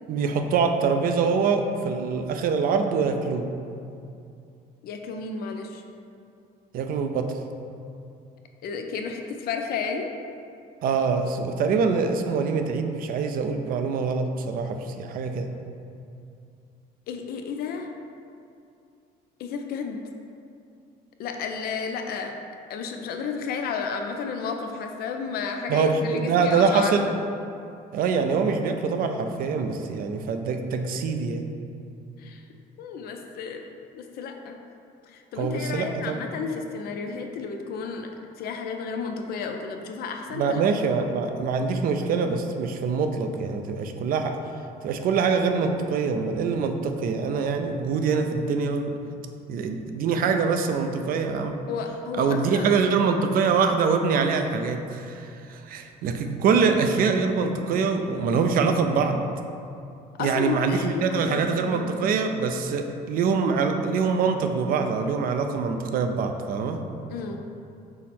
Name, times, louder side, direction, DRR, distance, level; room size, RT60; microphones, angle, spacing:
voice 1, 0.1-3.5 6.7-7.3 10.8-15.5 25.7-27.1 27.9-31.4 35.4-36.2 40.3-44.3 44.8-48.9 49.5-51.5 52.2-59.2 60.2-66.9, right 5 dB, 60° right, 6 dB, 0.4 m, -24 dB
voice 2, 4.8-5.8 8.6-10.1 17.1-17.9 19.4-20.0 21.2-22.3 22.7-26.9 32.2-32.4 32.8-33.6 33.9-34.6 35.1-38.1 38.4-40.6 51.7-52.7 60.2-61.9 67.1-67.4, left 5 dB, 65° left, 4 dB, 0.5 m, -32 dB
5.6 x 2.1 x 4.3 m, 2.5 s
cardioid pair, 110°, 17 cm